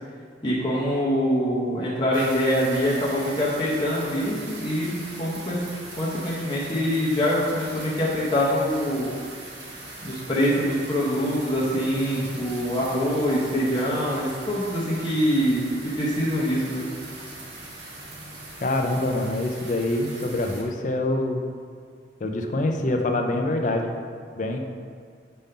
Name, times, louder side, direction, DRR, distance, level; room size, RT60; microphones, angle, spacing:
voice 1, 0.4-5.6 6.0-9.1 10.0-16.8, equal, 25° left, -7 dB, 0.9 m, -24 dB
sound 1, 2.1-20.6, right 2 dB, 75° right, 1.3 m, -40 dB
voice 2, 18.6-21.6 22.2-24.0 24.3-24.6, left 2 dB, 45° left, 3 dB, 0.5 m, -25 dB
5.2 x 3.7 x 5.5 m, 2.1 s
head